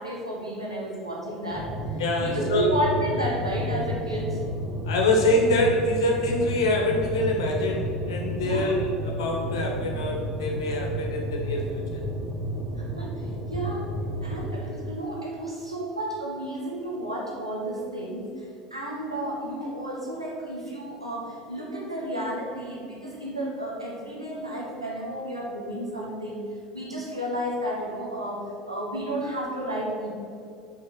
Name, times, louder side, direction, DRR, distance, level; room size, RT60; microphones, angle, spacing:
voice 1, 0.0-4.4 8.4-8.8 12.7-13.9 14.2-26.4 26.7-30.1, right 1 dB, 85° right, -4 dB, 1.6 m, -32 dB
sound 1, 1.5-14.5, equal, 25° right, 1.7 m, -32 dB
voice 2, 2.0-2.7 4.8-12.0, left 1 dB, 65° left, 1 dB, 1.4 m, -25 dB
6.5 x 4.7 x 6.1 m, 2.6 s
figure-of-eight pair, 70°, 3 cm